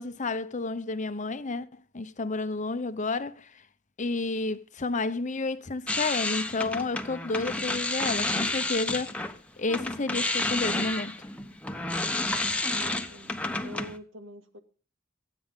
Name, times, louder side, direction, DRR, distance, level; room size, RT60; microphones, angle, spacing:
voice 1, 0.0-3.6 4.0-9.1 9.6-11.1, left 3 dB, 35° left, 0.9 m, -31 dB
sound 1, 5.9-9.4 9.7-14.0, left 2 dB, 5° left, 1.1 m, -30 dB
voice 2, 12.7-14.6, left 1 dB, 70° right, 2.3 m, -45 dB
26.0 x 8.7 x 3.8 m
head